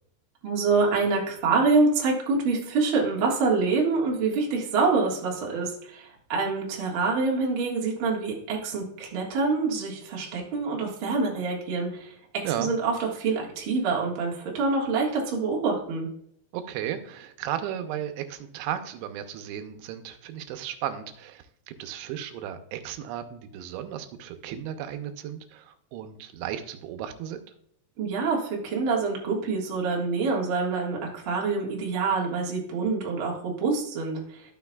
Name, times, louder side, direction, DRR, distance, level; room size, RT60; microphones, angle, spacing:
voice 1, 0.4-16.1 28.0-34.4, right 4 dB, 65° right, -2 dB, 1.2 m, -26 dB
voice 2, 16.5-27.4, right 10 dB, 85° right, 8 dB, 3.0 m, -35 dB
13.0 x 6.2 x 2.3 m, 0.70 s
omnidirectional pair, 5.2 m